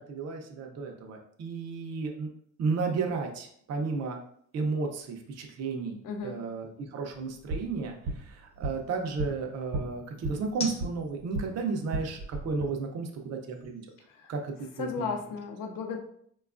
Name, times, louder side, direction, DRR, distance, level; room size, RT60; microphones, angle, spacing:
voice 1, 0.0-2.3 2.6-4.2 4.5-13.7 14.3-15.1, right 4 dB, 55° right, 2 dB, 0.5 m, -33 dB
sound 1, 0.8-15.0, left 2 dB, 20° left, 0.5 m, -50 dB
voice 2, 6.0-6.4 14.1-14.3 14.8-16.0, left 5 dB, 80° left, 3 dB, 0.6 m, -34 dB
sound 2, 7.3-11.5 11.8-12.7, right 2 dB, 85° right, 0.8 m, -36 dB
4.4 x 2.3 x 2.4 m, 0.66 s
cardioid pair, 170°, 32 cm